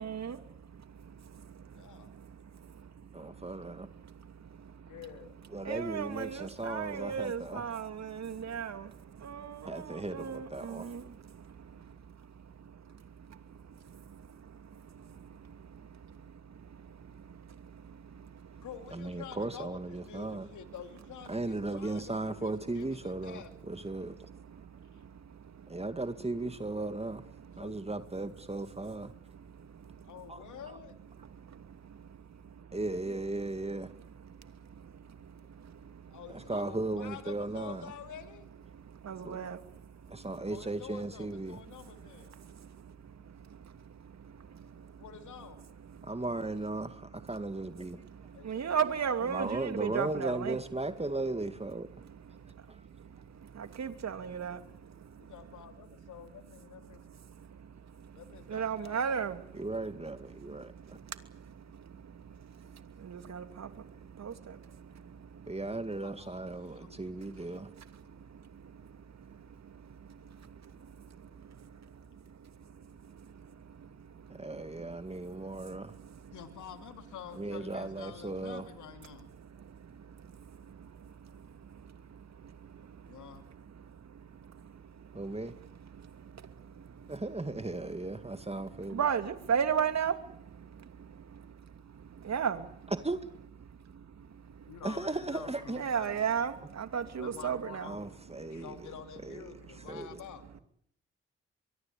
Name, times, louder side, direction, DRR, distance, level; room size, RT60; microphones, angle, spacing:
voice 1, 0.0-5.1 5.5-18.7 21.3-22.1 23.1-23.3 23.6-25.9 26.8-27.9 28.7-30.6 31.1-32.8 33.5-36.5 38.7-40.5 41.4-46.3 46.8-50.6 51.9-56.3 56.5-66.0 66.3-76.6 78.2-78.3 79.0-92.9 93.6-94.8 95.7-98.8 99.5-100.6, right 7 dB, 60° right, 2.8 m, -40 dB
voice 2, 1.7-2.1 4.9-5.4 18.6-23.6 24.9-25.0 27.6-27.8 30.0-30.9 36.1-38.5 40.5-42.4 45.0-45.7 48.3-48.7 55.2-57.0 58.2-59.0 66.0-66.4 66.7-67.1 76.3-79.3 83.1-83.4 94.7-96.2 97.2-98.1 98.5-100.5, left 9 dB, 80° left, 2.8 m, -48 dB
voice 3, 3.1-3.9 5.5-7.6 9.6-10.9 18.9-20.5 21.3-24.3 25.7-27.2 27.6-29.1 30.3-30.4 32.7-33.9 36.3-37.9 39.2-39.4 40.1-41.6 46.0-48.0 49.3-51.9 52.7-52.9 59.6-61.0 65.5-67.7 74.3-75.9 77.3-78.6 85.1-85.5 87.1-89.0 93.0-93.2 94.8-95.8 97.8-98.9 99.2-100.2, right 2 dB, 20° right, 2.2 m, -36 dB
23.5 x 23.0 x 8.6 m
supercardioid pair, 45°, 30 cm